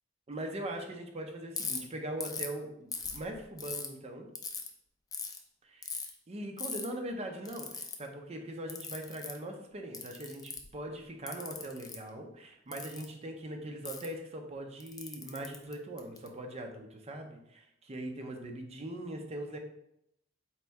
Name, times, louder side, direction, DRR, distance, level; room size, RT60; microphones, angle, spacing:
voice 1, 0.3-4.3 5.6-5.9 6.3-19.6, right 1 dB, 35° right, 3 dB, 0.5 m, -41 dB
Ratchet pawl, 1.5-1.8 2.2-2.5 2.9-3.9 4.3-4.7 5.1-5.4 5.8-6.1 6.6-6.8 7.4-8.0 8.7-9.4 9.9-10.7 11.3-12.0 12.7-13.0 13.8-14.1 14.8-16.3, left 5 dB, 20° left, 0.4 m, -39 dB
4.2 x 2.6 x 3.4 m, 0.78 s
head